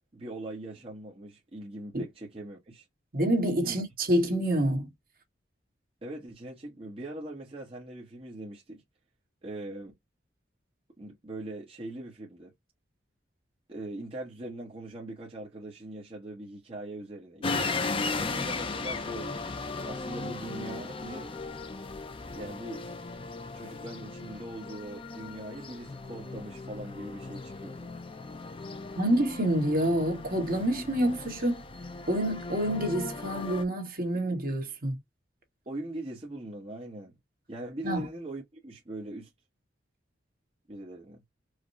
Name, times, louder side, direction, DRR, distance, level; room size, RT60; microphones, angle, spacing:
voice 1, 0.1-2.9 3.6-3.8 6.0-8.8 9.4-9.9 11.0-12.5 13.7-17.7 18.1-19.5 19.8-21.4 22.3-22.8 23.5-27.9 35.7-37.1 37.5-39.3 40.7-41.2, right 1 dB, 30° right, 1.1 m, -41 dB
voice 2, 3.1-4.9 29.0-31.6 32.1-35.0 37.8-38.1, right 1 dB, 50° right, 1.6 m, -27 dB
sound 1, 17.4-33.6, left 3 dB, 30° left, 0.5 m, -37 dB
4.8 x 2.2 x 2.6 m
head